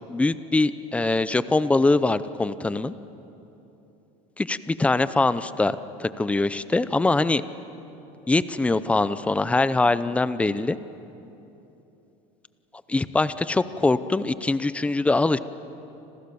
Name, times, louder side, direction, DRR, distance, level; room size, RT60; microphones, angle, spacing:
voice 1, 0.1-2.9 4.4-7.4 8.3-10.8 12.9-15.4, left 2 dB, 10° left, 14 dB, 0.7 m, -23 dB
29.5 x 26.5 x 7.0 m, 3.0 s
cardioid pair, 145°, 16 cm